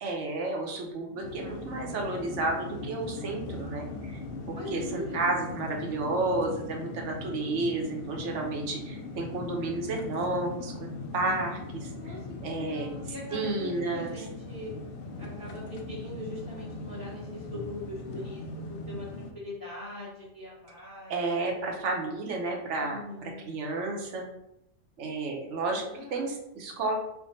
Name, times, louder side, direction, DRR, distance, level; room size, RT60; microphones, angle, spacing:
voice 1, 0.0-4.2 4.5-12.1 12.4-12.9 13.3-14.1 21.1-23.0 23.4-24.3 25.0-25.8 26.1-26.9, right 2 dB, 70° right, 1 dB, 1.0 m, -31 dB
sound 1, 1.2-19.3, left 2 dB, 65° left, 0.6 m, -40 dB
voice 2, 4.5-5.3 11.9-14.7 15.2-18.4 18.7-21.2 22.8-23.5 25.6-26.4, left 2 dB, 20° left, -6 dB, 1.0 m, -41 dB
3.4 x 2.2 x 3.9 m, 0.83 s
omnidirectional pair, 1.3 m